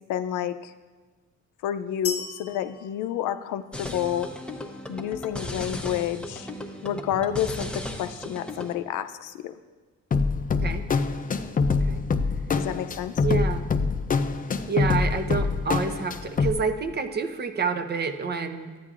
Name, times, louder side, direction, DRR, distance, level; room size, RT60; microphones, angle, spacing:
voice 1, 0.1-0.7 1.6-4.3 4.9-6.5 6.8-9.5 12.6-13.1, left 10 dB, 85° left, 11 dB, 0.5 m, -29 dB
sound 1, 2.0-4.0, left 5 dB, 50° left, 1.0 m, -37 dB
sound 2, 3.7-8.8, left 1 dB, 5° left, 0.9 m, -36 dB
sound 3, 10.1-16.5, left 4 dB, 30° left, 0.5 m, -25 dB
voice 2, 13.2-13.7 14.7-18.7, right 5 dB, 35° right, 8 dB, 0.7 m, -28 dB
12.0 x 9.2 x 2.5 m, 1.3 s
cardioid pair, 90°, 30 cm